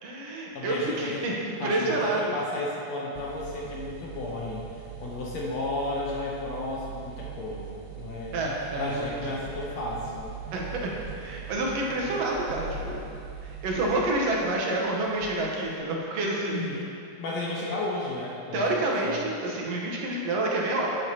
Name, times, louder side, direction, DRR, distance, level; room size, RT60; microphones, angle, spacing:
voice 1, 0.0-2.4 8.3-9.2 10.5-13.0 13.4-16.6 18.5-21.0, right 2 dB, 65° right, -2 dB, 2.0 m, -28 dB
voice 2, 0.6-8.4 8.8-10.3 16.5-16.9 17.2-18.7 19.0-19.2, left 2 dB, 70° left, -4 dB, 1.9 m, -33 dB
sound 1, 3.2-15.8, right 7 dB, 90° right, 2.2 m, -42 dB
11.0 x 7.4 x 2.8 m, 2.5 s
omnidirectional pair, 3.4 m